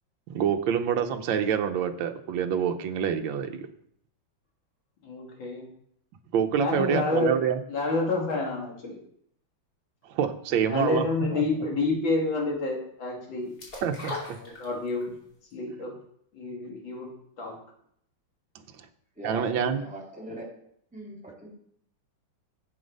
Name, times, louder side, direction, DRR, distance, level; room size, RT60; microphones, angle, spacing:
voice 1, 0.3-3.7 6.3-7.6 10.1-11.0 13.8-14.4 19.2-19.8, right 8 dB, 75° right, 6 dB, 1.5 m, -26 dB
voice 2, 5.0-5.6 6.6-7.3 7.7-9.0 10.7-13.5 14.4-15.1 15.5-15.9 16.3-17.6, left 3 dB, 70° left, -1 dB, 3.1 m, -29 dB
sound 1, 13.6-15.1 15.5-15.6, left 2 dB, 50° left, 3.2 m, -37 dB
voice 3, 19.2-20.5 20.9-21.5, right 1 dB, 5° right, -4 dB, 2.6 m, -40 dB
8.0 x 7.3 x 5.3 m, 0.68 s
omnidirectional pair, 2.2 m